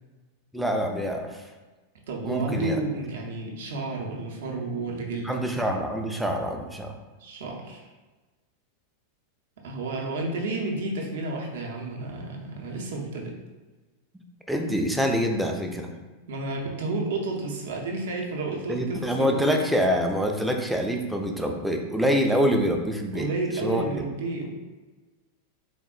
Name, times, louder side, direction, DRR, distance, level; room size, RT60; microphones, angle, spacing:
voice 1, 0.5-1.4 2.2-2.8 5.2-6.9 14.5-15.9 18.7-23.3 23.6-23.8, equal, ahead, 2 dB, 0.3 m, -25 dB
voice 2, 2.1-5.4 7.2-7.9 9.6-13.3 16.3-19.3 23.1-24.5, right 2 dB, 60° right, 0 dB, 0.5 m, -31 dB
3.4 x 2.0 x 2.3 m, 1.2 s
figure-of-eight pair, 90°, 0 cm